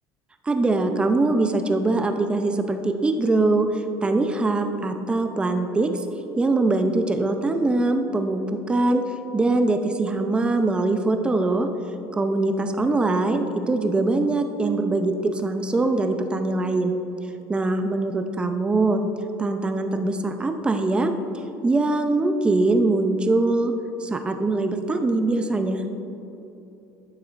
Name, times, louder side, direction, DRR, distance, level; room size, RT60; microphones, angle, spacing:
voice 1, 0.5-3.7 4.0-6.0 6.4-9.0 9.3-11.7 12.1-17.0 17.5-19.0 19.4-21.1 21.6-23.7 24.0-25.8, right 2 dB, 15° right, 6 dB, 0.5 m, -22 dB
12.0 x 6.8 x 2.5 m, 3.0 s
cardioid pair, 140°, 7 cm